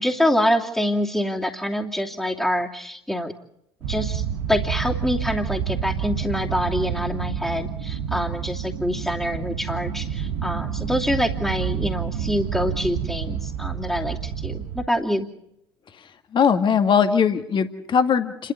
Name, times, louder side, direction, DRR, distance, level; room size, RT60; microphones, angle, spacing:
voice 1, 0.0-3.3 3.9-4.2 4.5-15.3, equal, ahead, -1 dB, 2.7 m, -25 dB
sound 1, 3.8-14.9, right 8 dB, 65° right, 1.4 m, -29 dB
voice 2, 16.3-18.5, left 7 dB, 40° left, 7 dB, 2.0 m, -20 dB
29.5 x 12.5 x 8.2 m, 0.80 s
figure-of-eight pair, 55°, 12 cm